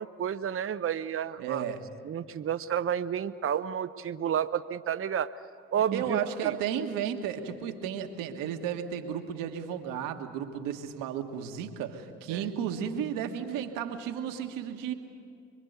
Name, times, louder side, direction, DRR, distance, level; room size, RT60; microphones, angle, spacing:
voice 1, 0.0-1.6 2.0-5.3 5.7-6.5 12.3-12.5, right 9 dB, 40° right, 10 dB, 0.8 m, -31 dB
voice 2, 1.4-1.8 5.9-14.9, right 8 dB, 80° right, 6 dB, 1.6 m, -33 dB
25.5 x 23.0 x 8.1 m, 2.4 s
hypercardioid pair, 50°, 33 cm